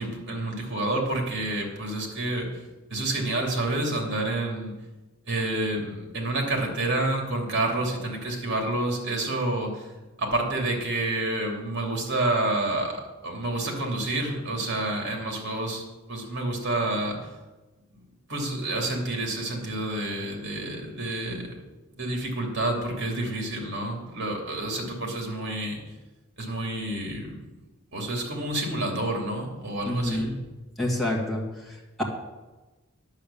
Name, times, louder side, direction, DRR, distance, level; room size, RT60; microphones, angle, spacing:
voice 1, 0.0-2.5 2.9-4.7 5.3-9.8 10.2-17.3 18.3-21.4 22.0-25.8 26.4-27.4 27.9-30.2, right 2 dB, 55° right, 1 dB, 2.8 m, -29 dB
voice 2, 29.8-30.4 30.8-32.0, left 1 dB, ahead, -4 dB, 2.0 m, -28 dB
10.5 x 7.7 x 7.0 m, 1.2 s
head